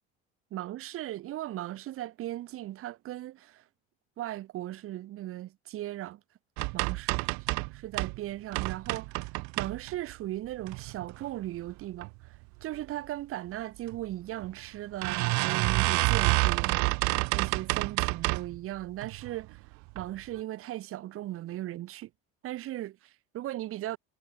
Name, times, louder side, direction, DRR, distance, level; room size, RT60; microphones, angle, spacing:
voice 1, 0.5-3.6 4.2-6.2 6.7-7.2 7.7-16.8 17.3-19.6 19.9-22.1 22.4-24.0, right 14 dB, 50° right, 4.9 m, -37 dB
sound 1, 6.6-8.2 8.5-10.1 10.6-11.2 11.7-12.1 12.3-12.4 12.7-12.8 13.9-14.0 14.4-14.5 15.0-18.6 19.0-19.4 19.9-20.0 20.4-20.5, right 28 dB, 75° right, 1.3 m, -29 dB
cardioid pair, 155°, 29 cm